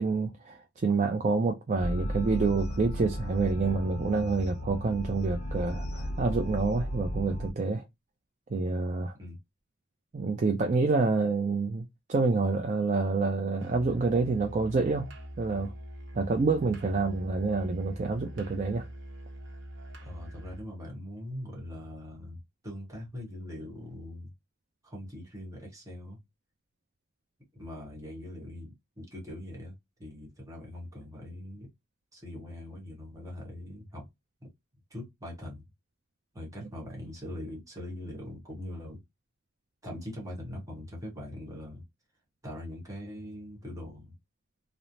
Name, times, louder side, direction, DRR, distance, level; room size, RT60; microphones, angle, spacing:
voice 1, 0.0-7.8 8.5-9.1 10.1-15.1 15.4-15.7 16.2-18.9, right 3 dB, 35° right, 0.4 m, -27 dB
sound 1, 1.8-7.5, equal, 30° left, 0.5 m, -35 dB
Musical instrument, 13.6-20.7, right 1 dB, 55° right, 0.8 m, -44 dB
voice 2, 20.0-24.3 24.8-26.2 27.5-29.7 30.0-31.7 32.1-34.1 34.4-34.5 34.9-35.7 36.3-39.0 39.8-41.8 42.4-44.2, left 1 dB, 15° right, 1.1 m, -42 dB
3.1 x 2.0 x 2.5 m
head